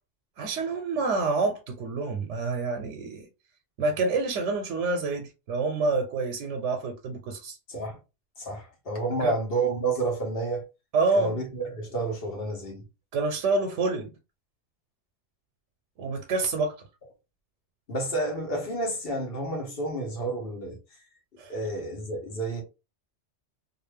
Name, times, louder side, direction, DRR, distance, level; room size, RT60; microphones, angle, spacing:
voice 1, 0.4-3.3 3.8-7.6 9.2-9.3 10.9-11.4 13.1-14.1 16.0-16.7 21.4-21.5, right 3 dB, 90° right, 0.9 m, -27 dB
voice 2, 7.7-8.0 8.4-10.6 11.1-12.8 17.9-20.8 21.5-22.6, right 2 dB, 55° left, 1.2 m, -30 dB
2.5 x 2.4 x 3.2 m
omnidirectional pair, 1.2 m